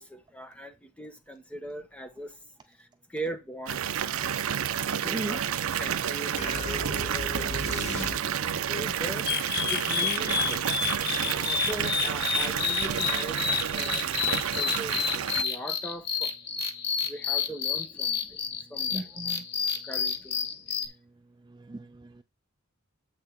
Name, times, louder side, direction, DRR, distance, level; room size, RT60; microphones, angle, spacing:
voice 1, 0.0-2.4 2.6-3.8 5.0-5.4 5.8-10.6 11.2-13.4 13.7-14.2 14.5-16.3 17.0-18.3 18.7-19.1 19.8-20.5, right 1 dB, 5° left, 1.1 m, -40 dB
Water tap faucet / Bathtub (filling or washing) / Fill (with liquid), 3.7-15.4, right 9 dB, 75° right, 0.5 m, -30 dB
voice 2, 5.1-5.4 18.9-19.4 21.5-22.2, right 2 dB, 20° right, 0.4 m, -37 dB
sound 1, 6.4-8.6, left 2 dB, 30° left, 1.0 m, -36 dB
sound 2, 9.3-20.9, left 7 dB, 50° left, 1.1 m, -30 dB
7.7 x 5.7 x 4.5 m
head